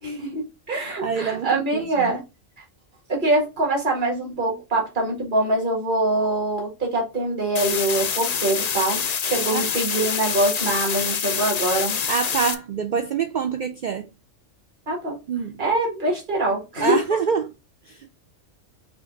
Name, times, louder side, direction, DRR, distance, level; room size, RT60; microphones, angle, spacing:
voice 1, 0.0-2.2 3.1-12.0 14.9-15.2 15.6-17.0, right 2 dB, 40° right, 1.8 m, -24 dB
voice 2, 1.0-2.1 9.5-9.7 12.1-14.1 15.3-15.6 16.8-17.5 17.9-18.1, right 6 dB, 75° right, 0.4 m, -26 dB
sound 1, 7.5-12.5, left 7 dB, 60° left, 0.4 m, -26 dB
5.8 x 2.4 x 3.8 m
omnidirectional pair, 1.3 m